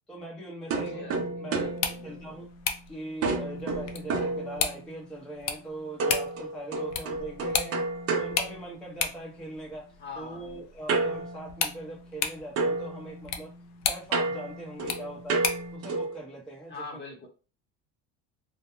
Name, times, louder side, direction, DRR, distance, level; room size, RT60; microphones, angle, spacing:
voice 1, 0.1-1.1 1.4-1.6 2.0-2.5 2.9-7.8 8.2-9.9 10.1-13.5 13.9-15.4 15.7-16.7, right 1 dB, ahead, -4 dB, 0.6 m, -40 dB
voice 2, 0.7-2.4 10.0-10.6 16.7-17.3, left 3 dB, 30° left, 1 dB, 0.9 m, -43 dB
sound 1, 0.7-2.8 3.2-5.1 6.0-9.2 10.9-12.3 12.6-16.2, right 3 dB, 40° right, 0.7 m, -32 dB
sound 2, 1.6-15.8, left 7 dB, 45° left, 0.5 m, -36 dB
2.3 x 2.1 x 2.9 m, 0.35 s
supercardioid pair, 110°, 38 cm